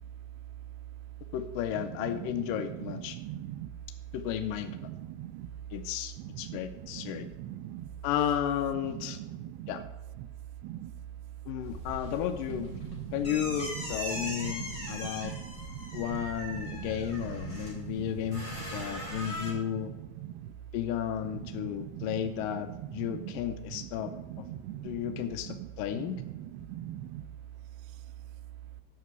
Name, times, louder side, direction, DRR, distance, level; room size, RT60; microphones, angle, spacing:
voice 1, 1.3-3.2 4.1-4.9 5.7-7.3 8.0-9.2 9.7-9.8 11.5-12.8 13.1-15.3 15.9-19.9 20.7-24.5 24.8-26.2, left 10 dB, 80° left, 8 dB, 2.0 m, -33 dB
voice 2, 3.1-3.7 4.9-5.5 6.5-6.6 7.0-7.9 9.6-9.7 10.6-10.9 12.9-13.1 15.0-15.4 15.8-16.0 16.7-16.8 17.7-18.0 19.3-19.4 20.2-20.3 21.6-21.7 22.0-22.1 23.1-23.2 24.5-25.0 26.7-27.2, right 13 dB, 85° right, 15 dB, 2.5 m, -40 dB
sound 1, 11.6-19.5, equal, 15° left, 4.2 m, -40 dB
9.5 x 5.9 x 8.2 m, 1.1 s
omnidirectional pair, 4.4 m